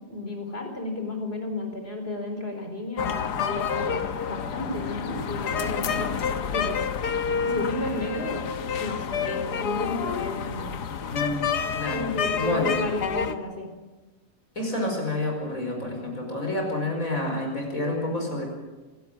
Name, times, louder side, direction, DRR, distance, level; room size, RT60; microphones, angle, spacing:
voice 1, 0.0-6.1 6.5-6.8 7.4-8.4 8.8-10.7 11.9-13.7, left 2 dB, 35° left, 4 dB, 4.3 m, -32 dB
sound 1, 3.0-13.4, left 7 dB, 85° left, 1.7 m, -29 dB
voice 2, 11.7-12.1 12.4-12.7 14.6-18.5, left 2 dB, 55° left, 1 dB, 5.6 m, -28 dB
27.0 x 12.5 x 8.7 m, 1.2 s
omnidirectional pair, 1.7 m